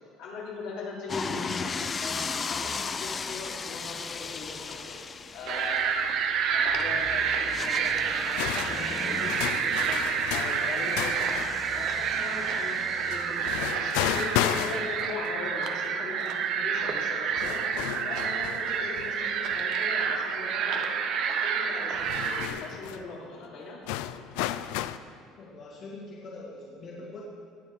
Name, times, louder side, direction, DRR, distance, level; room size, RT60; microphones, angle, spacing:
voice 1, 0.2-1.7 2.0-5.0 5.3-6.1 6.5-10.0 10.3-12.8 13.1-13.7 14.1-17.5 18.0-20.9 21.3-23.8, left 3 dB, 70° left, -4 dB, 3.2 m, -40 dB
sound 1, 1.1-13.6, left 5 dB, 25° left, 0.4 m, -37 dB
sound 2, 5.5-22.5, right 6 dB, 55° right, 0.9 m, -29 dB
sound 3, 8.3-11.6 13.1-15.3 15.8-15.9 17.0-17.1 17.3-19.6 20.0-20.1 21.9-23.0 23.9-25.0, left 13 dB, 90° left, 0.4 m, -33 dB
voice 2, 25.3-27.2, left 2 dB, 40° left, -5 dB, 2.2 m, -43 dB
18.5 x 7.2 x 4.9 m, 2.2 s
cardioid pair, 145°, 0 cm